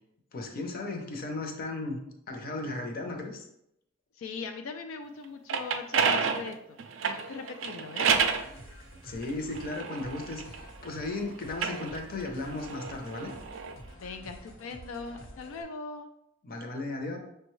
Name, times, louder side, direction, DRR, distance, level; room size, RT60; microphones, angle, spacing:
voice 1, 0.3-2.0 2.3-3.5 9.0-13.3 16.4-17.2, left 2 dB, 45° left, 3 dB, 0.6 m, -35 dB
voice 2, 4.1-6.6 7.0-8.1 14.0-16.1, left 4 dB, 85° left, 6 dB, 0.3 m, -40 dB
sound 1, 5.2-8.5 9.2-10.9 11.4-13.8, right 6 dB, 70° right, 0.4 m, -30 dB
sound 2, 8.1-15.6, equal, 70° left, 1.0 m, -49 dB
5.9 x 2.2 x 3.1 m, 0.81 s
head